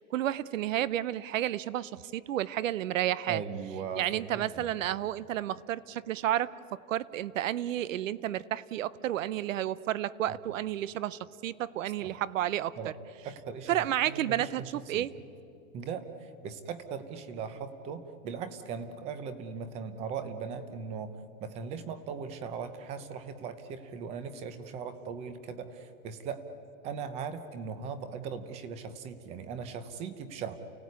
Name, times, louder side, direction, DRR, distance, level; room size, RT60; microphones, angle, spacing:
voice 1, 0.0-3.4 4.0-12.9 13.7-15.1, right 12 dB, 65° right, 19 dB, 0.8 m, -31 dB
voice 2, 3.3-4.7 10.3-10.4 12.0-12.2 12.8-12.9 13.2-15.1 15.7-26.4 26.8-30.6, right 6 dB, 15° right, 11 dB, 0.8 m, -39 dB
29.5 x 17.5 x 9.4 m, 2.7 s
supercardioid pair, 170°, 41 cm